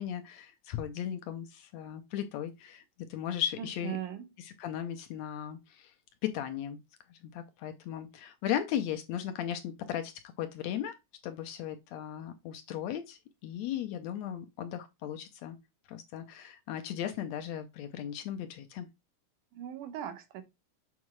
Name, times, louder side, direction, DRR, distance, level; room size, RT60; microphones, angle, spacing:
voice 1, 0.0-2.8 3.1-4.0 4.6-5.9 6.2-6.8 7.1-10.9 11.2-15.6 15.9-18.9, left 10 dB, 75° left, 1.7 m, -36 dB
voice 2, 3.6-4.3 19.5-20.4, right 10 dB, 85° right, 2.6 m, -39 dB
7.1 x 4.7 x 3.1 m
omnidirectional pair, 3.5 m